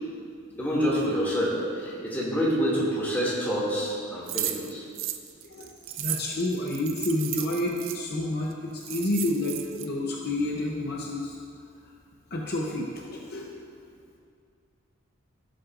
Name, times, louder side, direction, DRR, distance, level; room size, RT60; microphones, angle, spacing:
voice 1, 0.6-4.8, equal, 10° left, -7 dB, 2.3 m, -27 dB
sound 1, 4.3-8.0 8.5-8.6 8.8-9.9, right 11 dB, 65° right, 0.5 m, -34 dB
voice 2, 5.4-11.4 12.3-12.9 13.3-13.5, left 1 dB, 50° left, -2 dB, 0.8 m, -29 dB
16.0 x 7.6 x 2.5 m, 2.3 s
head